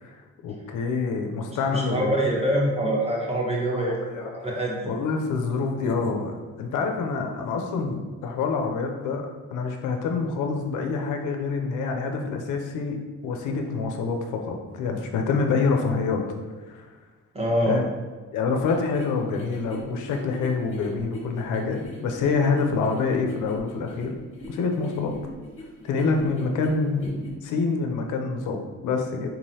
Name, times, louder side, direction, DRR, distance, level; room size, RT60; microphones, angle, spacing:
voice 1, 0.4-2.1 3.9-4.3 4.8-9.2 9.5-13.0 13.2-16.2 16.7-16.9 17.7-17.9 18.3-24.1 24.5-25.1 25.8-29.3, left 4 dB, 80° left, 3 dB, 0.5 m, -26 dB
voice 2, 1.5-5.0 17.3-17.8, right 1 dB, 20° right, -4 dB, 1.2 m, -25 dB
sound 1, 18.6-27.3, left 1 dB, 45° left, 1.0 m, -42 dB
3.9 x 3.0 x 2.8 m, 1.4 s
cardioid pair, 90°, 30 cm